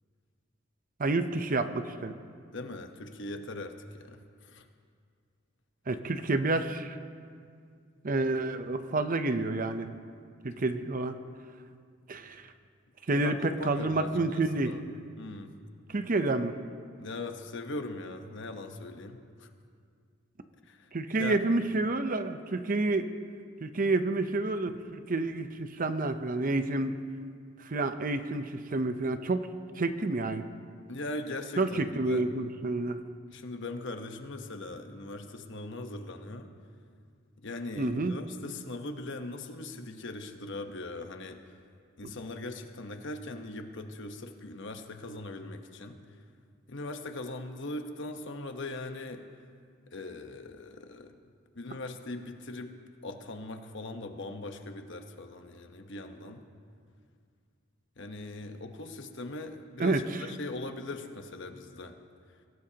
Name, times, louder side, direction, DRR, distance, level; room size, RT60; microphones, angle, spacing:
voice 1, 1.0-2.1 5.9-6.9 8.0-9.9 10.4-11.2 12.1-12.4 13.1-14.7 15.9-16.5 20.9-23.1 23.6-27.0 27.6-29.5 29.8-30.4 31.6-33.0 37.8-38.2 59.8-60.0, right 2 dB, 45° right, 9 dB, 0.7 m, -29 dB
voice 2, 2.5-4.7 13.1-14.8 15.2-15.5 17.0-19.5 20.7-20.9 21.2-21.4 30.9-32.2 33.3-36.5 37.4-41.4 42.0-46.0 46.7-49.3 49.9-51.1 51.5-52.7 53.0-56.4 58.0-60.0 60.3-62.0, left 2 dB, 65° left, 6 dB, 1.1 m, -40 dB
22.5 x 17.0 x 2.9 m, 2.2 s
head